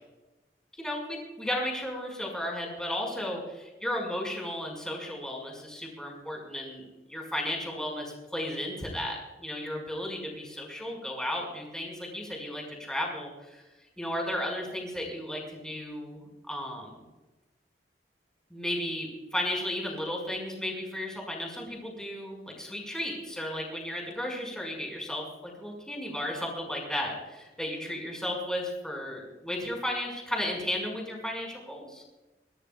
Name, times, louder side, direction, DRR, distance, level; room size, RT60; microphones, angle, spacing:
voice 1, 0.8-6.8 7.1-13.6 14.0-17.0 18.5-32.0, left 1 dB, 5° left, -1 dB, 5.6 m, -34 dB
25.0 x 18.5 x 2.4 m, 1.1 s
head